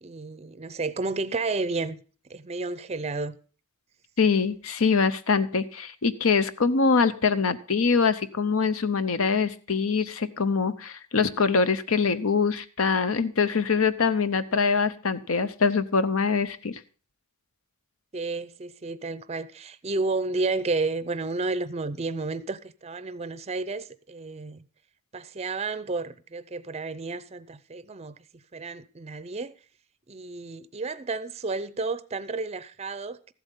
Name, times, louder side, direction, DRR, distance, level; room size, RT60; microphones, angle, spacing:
voice 1, 0.0-2.0 2.3-3.4 18.1-24.7 25.1-29.5 30.1-33.3, right 3 dB, 30° right, 0.5 m, -31 dB
voice 2, 4.2-16.8, left 5 dB, 70° left, 0.8 m, -24 dB
14.0 x 7.9 x 5.4 m
head